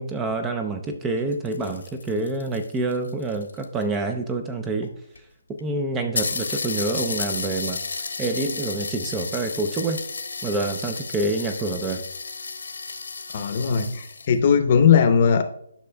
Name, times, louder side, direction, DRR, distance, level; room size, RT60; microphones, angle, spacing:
voice 1, 0.0-4.9 5.6-7.8 8.2-10.0 10.4-12.1, right 2 dB, 10° right, 6 dB, 0.4 m, -27 dB
sound 1, 1.2-3.9 4.8-4.9 5.2-5.3 5.6-5.7 6.2-14.3, left 4 dB, 85° left, 1.2 m, -32 dB
voice 2, 13.3-15.4, left 7 dB, 40° left, 8 dB, 0.8 m, -18 dB
11.5 x 5.9 x 2.2 m, 0.74 s
hypercardioid pair, 160°, 0 cm